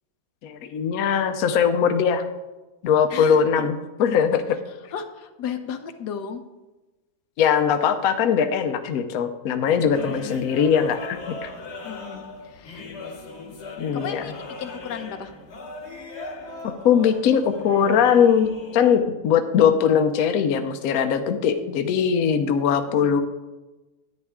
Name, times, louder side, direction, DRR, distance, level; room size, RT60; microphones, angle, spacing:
voice 1, 0.4-2.2 2.8-4.6 7.4-11.5 13.8-14.3 16.6-23.2, left 7 dB, 70° left, 7 dB, 1.1 m, -21 dB
voice 2, 3.1-3.7 4.9-6.4 9.7-10.3 11.6-12.8 13.9-15.3 22.9-23.2, left 6 dB, 85° left, 7 dB, 1.4 m, -35 dB
sound 1, 9.9-19.0, left 3 dB, 45° left, 1.3 m, -38 dB
10.5 x 9.4 x 3.6 m, 1.1 s
omnidirectional pair, 1.7 m